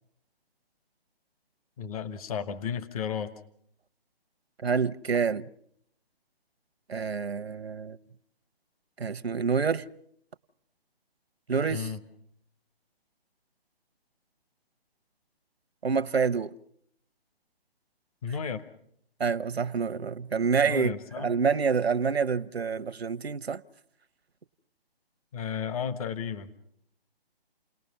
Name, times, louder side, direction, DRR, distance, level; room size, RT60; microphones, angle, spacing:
voice 1, 1.8-3.3 11.7-12.0 18.2-18.6 20.6-21.3 25.3-26.5, left 7 dB, 35° left, 1.2 m, -33 dB
voice 2, 4.6-5.5 6.9-8.0 9.0-9.8 11.5-11.9 15.8-16.5 19.2-23.6, right 5 dB, 80° right, 0.9 m, -27 dB
29.5 x 19.0 x 5.6 m
figure-of-eight pair, 145°, 31 cm